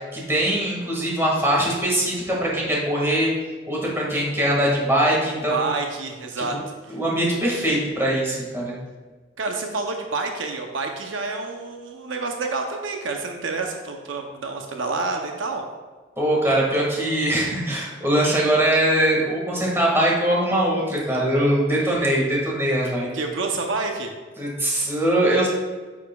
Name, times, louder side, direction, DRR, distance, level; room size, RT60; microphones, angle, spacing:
voice 1, 0.1-3.3 3.7-5.7 6.9-8.7 16.2-23.1 24.4-25.5, right 1 dB, 15° right, -4 dB, 1.9 m, -22 dB
voice 2, 5.5-6.6 6.8-7.0 9.4-15.6 23.1-24.1, right 3 dB, 80° right, 3 dB, 0.7 m, -28 dB
9.3 x 7.1 x 2.4 m, 1.4 s
head